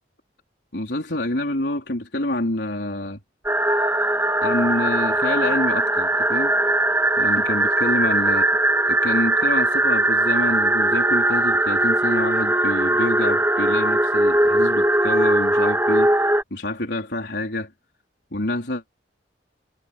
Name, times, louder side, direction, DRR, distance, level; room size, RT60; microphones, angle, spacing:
voice 1, 0.7-3.2 4.4-6.5 7.2-8.5 8.9-17.7 18.3-18.8, left 1 dB, 65° left, 4.0 m, -27 dB
sound 1, 3.4-16.4, right 1 dB, 15° right, 3.3 m, -20 dB
head